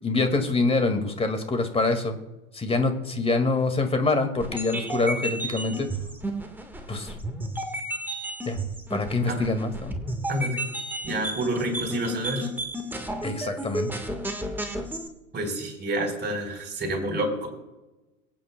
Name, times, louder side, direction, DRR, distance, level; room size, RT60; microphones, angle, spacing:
voice 1, 0.0-2.2 2.5-5.9 6.9-7.1 8.4-8.6 8.9-9.9 13.2-14.0, left 3 dB, 15° left, 7 dB, 2.0 m, -25 dB
sound 1, 4.4-15.1, right 1 dB, 5° right, 1.5 m, -33 dB
voice 2, 10.3-10.6 11.0-12.5 15.3-17.5, right 1 dB, 25° right, 1 dB, 4.2 m, -28 dB
24.0 x 9.1 x 2.3 m, 1.0 s
hypercardioid pair, 95°, 41 cm